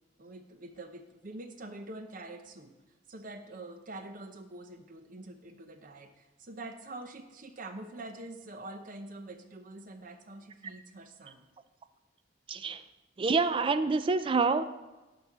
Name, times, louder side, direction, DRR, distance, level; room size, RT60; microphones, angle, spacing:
voice 1, 0.2-2.7 3.1-11.5, right 2 dB, 45° right, 7 dB, 0.7 m, -45 dB
voice 2, 12.5-12.8 13.2-14.6, right 4 dB, 30° right, 12 dB, 0.3 m, -27 dB
11.5 x 4.2 x 4.6 m, 1.1 s
head